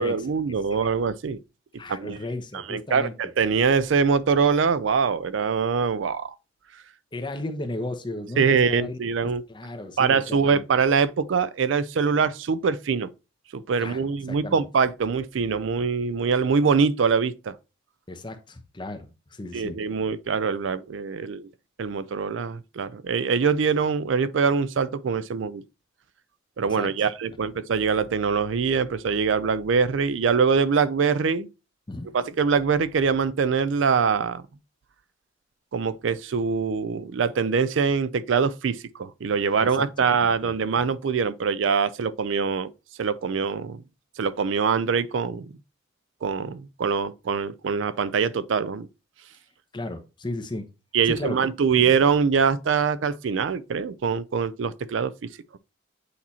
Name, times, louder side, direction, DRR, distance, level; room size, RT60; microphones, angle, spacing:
voice 1, 0.0-1.4 1.9-2.2 2.7-6.3 8.4-9.4 10.0-13.1 13.5-17.5 19.5-21.5 21.8-25.6 26.6-31.5 32.1-34.4 35.7-42.7 43.0-43.8 44.2-45.5 46.2-48.9 50.9-55.3, right 5 dB, 75° right, 0.4 m, -23 dB
voice 2, 1.8-3.1 7.1-9.0 9.5-10.7 13.8-14.6 18.1-19.8 26.7-27.1 31.9-32.1 39.6-39.9 40.2-40.5 49.7-50.6 51.0-51.9, left 2 dB, 25° left, 0.9 m, -35 dB
8.4 x 2.9 x 4.2 m
head